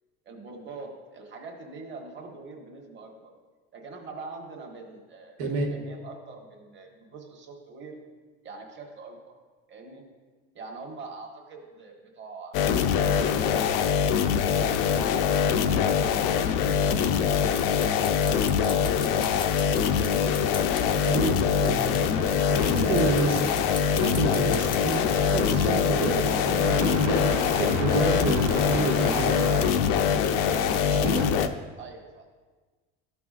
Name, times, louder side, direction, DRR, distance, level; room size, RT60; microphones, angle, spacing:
voice 1, 0.2-3.4 3.7-8.0 8.4-9.4 9.7-10.0 10.5-12.6 13.1-13.8 15.3-21.1 21.8-22.6 24.0-24.3 25.2-25.5 30.5-31.2 31.8-32.2, right 3 dB, 35° right, 0 dB, 1.4 m, -43 dB
voice 2, 5.4-5.7 21.1-21.9 22.5-23.5 23.8-30.0 30.9-31.3, right 3 dB, 90° right, -1 dB, 1.8 m, -29 dB
sound 1, 12.5-31.5, left 7 dB, 75° left, 0.6 m, -24 dB
sound 2, 16.5-22.3 22.6-25.5 26.8-28.4, left 5 dB, 15° left, 0.3 m, -43 dB
sound 3, 22.0-29.7, right 5 dB, 60° right, 1.0 m, -38 dB
13.0 x 6.0 x 2.5 m, 1.4 s
cardioid pair, 130°, 34 cm